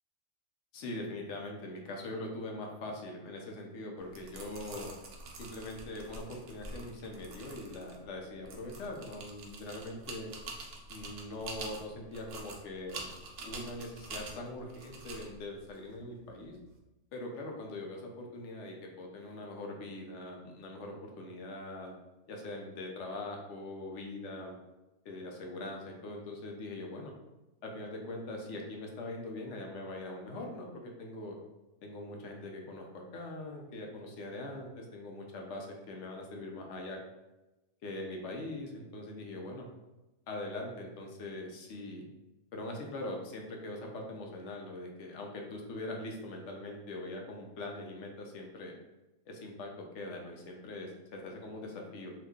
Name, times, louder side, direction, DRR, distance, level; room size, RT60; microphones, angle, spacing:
voice 1, 0.7-4.9 5.4-10.3 10.9-13.1 13.4-16.6 17.1-21.9 22.3-24.6 25.0-27.1 27.6-31.4 31.8-37.0 37.8-39.7 40.3-42.1 42.5-48.7 49.3-52.1, left 2 dB, 70° left, 1 dB, 0.9 m, -42 dB
sound 1, 4.0-16.7, right 3 dB, 70° right, 0.9 m, -47 dB
2.8 x 2.4 x 3.5 m, 1.0 s
omnidirectional pair, 1.3 m